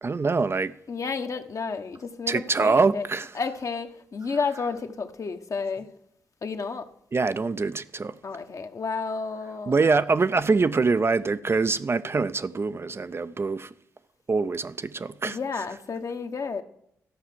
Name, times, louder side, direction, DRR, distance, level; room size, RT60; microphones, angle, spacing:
voice 1, 0.0-0.7 2.3-3.3 7.1-8.2 9.7-13.7 14.3-15.4, right 4 dB, 35° right, 0.5 m, -24 dB
voice 2, 0.9-3.1 3.3-5.9 6.4-6.9 8.2-9.7 15.2-16.6, left 5 dB, 50° left, 1.1 m, -31 dB
13.0 x 5.8 x 7.6 m
hypercardioid pair, 45°, 7 cm